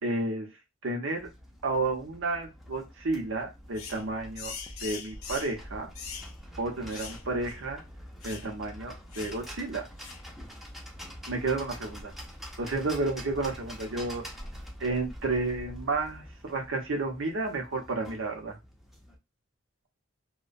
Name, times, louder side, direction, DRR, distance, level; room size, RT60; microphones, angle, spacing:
voice 1, 0.0-0.5 0.8-1.3 1.6-4.5 4.8-5.9 6.6-7.8 8.2-9.9 11.3-12.1 12.6-14.3 14.8-18.6, right 3 dB, 65° right, 3 dB, 0.8 m, -31 dB
sound 1, 1.1-19.2, equal, ahead, 0.5 m, -46 dB
sound 2, 3.8-4.0 4.4-5.6 6.0-6.3 6.9-7.2 7.5-7.6 8.2-8.5 9.1-9.4 10.0-10.3, left 7 dB, 90° left, 0.5 m, -42 dB
2.3 x 2.2 x 2.5 m, 0.23 s
head